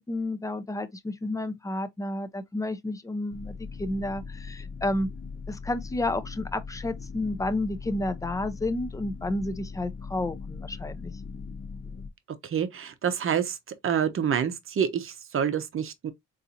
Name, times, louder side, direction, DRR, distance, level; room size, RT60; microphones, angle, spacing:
voice 1, 0.0-5.1 5.5-11.1, left 2 dB, 10° left, 0.5 m, -31 dB
sound 1, 3.3-12.1, left 5 dB, 40° left, 0.8 m, -40 dB
voice 2, 12.4-13.6 13.8-16.1, right 8 dB, 45° right, 0.7 m, -27 dB
3.7 x 2.6 x 2.7 m
cardioid pair, 90°, 30 cm